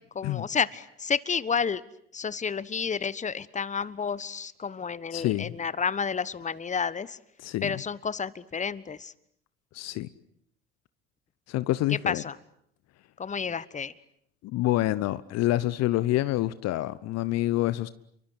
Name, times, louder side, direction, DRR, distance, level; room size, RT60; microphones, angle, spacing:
voice 1, 0.1-1.8 2.1-7.2 7.6-9.1 12.0-12.4 13.2-13.9, left 6 dB, 25° left, 1.3 m, -30 dB
voice 2, 5.1-5.5 7.4-7.8 9.7-10.1 11.5-12.2 14.4-17.9, left 16 dB, 55° left, 1.0 m, -27 dB
29.5 x 24.0 x 8.2 m
hypercardioid pair, 65°, 30 cm